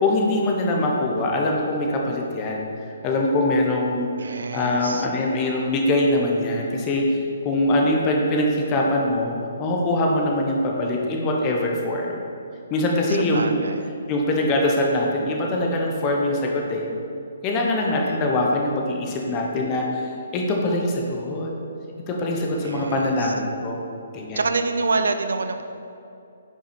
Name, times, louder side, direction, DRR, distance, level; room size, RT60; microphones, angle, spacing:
voice 1, 0.0-2.7 3.0-4.1 4.5-7.2 7.4-12.1 12.7-13.6 14.1-16.8 17.4-21.5 22.1-23.8 24.1-24.4, left 1 dB, 25° left, 0 dB, 1.0 m, -23 dB
voice 2, 4.2-5.1 13.1-13.9 17.8-18.2 22.6-23.3 24.3-25.6, right 4 dB, 80° right, 7 dB, 0.5 m, -27 dB
5.4 x 4.8 x 5.2 m, 2.7 s
hypercardioid pair, 150°, 0 cm